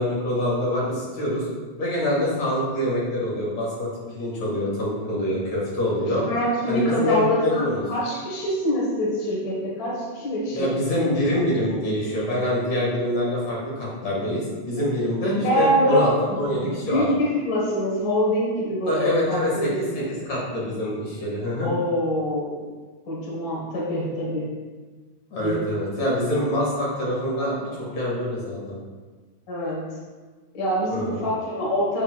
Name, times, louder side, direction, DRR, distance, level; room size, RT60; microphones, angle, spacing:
voice 1, 0.0-1.5 1.8-6.2 6.7-7.8 10.5-17.1 18.9-19.7 20.3-21.7 25.3-28.8 30.9-31.3, left 1 dB, 50° left, -6 dB, 2.8 m, -25 dB
voice 2, 6.2-11.1 11.3-11.4 15.2-16.1 16.4-20.1 21.6-22.5 23.1-24.5 25.4-26.1 29.5-30.0 30.5-32.0, equal, 75° left, -5 dB, 0.8 m, -25 dB
7.0 x 6.2 x 2.4 m, 1.4 s
omnidirectional pair, 4.1 m